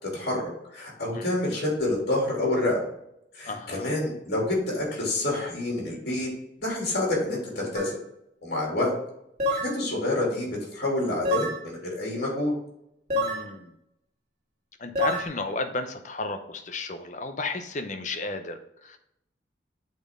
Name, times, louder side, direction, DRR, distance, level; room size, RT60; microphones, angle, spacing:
voice 1, 0.0-2.8 3.3-6.3 6.6-8.0 8.4-8.9 9.5-12.5, left 1 dB, 60° left, -3 dB, 2.7 m, -28 dB
voice 2, 3.5-3.9 13.1-13.7 14.8-19.0, left 3 dB, 40° left, 8 dB, 0.7 m, -33 dB
sound 1, 7.7-7.9 9.4-9.8 11.2-11.6 13.1-13.5 15.0-15.3, left 1 dB, 40° right, 1.7 m, -26 dB
8.3 x 4.5 x 3.6 m, 0.80 s
head